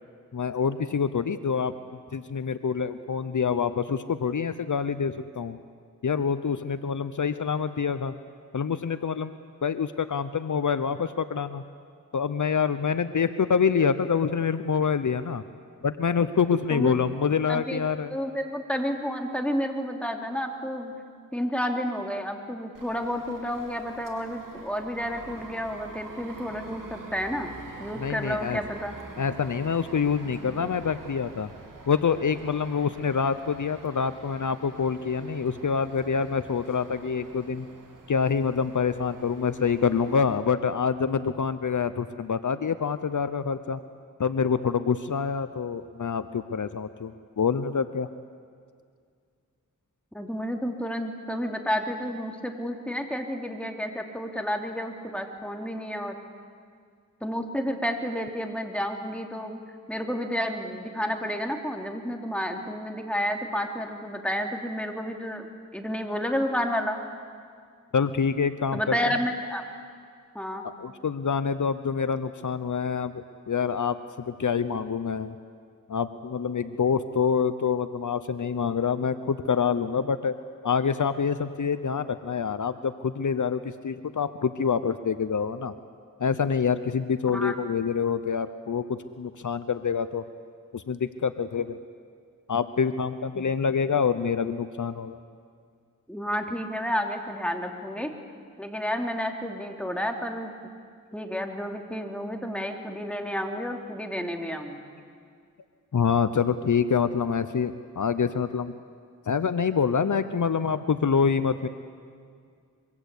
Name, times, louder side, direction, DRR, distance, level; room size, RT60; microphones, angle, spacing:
voice 1, 0.3-1.7 2.1-5.6 6.0-8.1 8.5-9.3 9.6-11.6 12.1-15.4 15.8-18.1 28.0-28.6 29.2-31.5 31.9-37.7 38.1-43.8 44.2-48.1 67.9-69.0 70.8-75.4 75.9-80.3 80.6-85.7 86.2-90.2 90.7-91.8 92.5-95.2 105.9-108.7 109.3-111.7, left 6 dB, 65° left, 12 dB, 0.9 m, -26 dB
voice 2, 16.7-17.1 17.5-17.8 18.1-20.9 21.3-27.5 27.8-28.9 50.1-56.2 57.2-59.6 59.9-67.0 68.7-69.6 70.3-70.7 87.3-87.5 93.3-93.4 96.1-98.1 98.6-100.5 101.1-104.9, equal, 5° left, 3 dB, 3.0 m, -31 dB
sound 1, 22.7-40.4, right 3 dB, 75° right, 2.9 m, -46 dB
24.5 x 24.0 x 8.5 m, 2.1 s
wide cardioid pair, 60°, 32 cm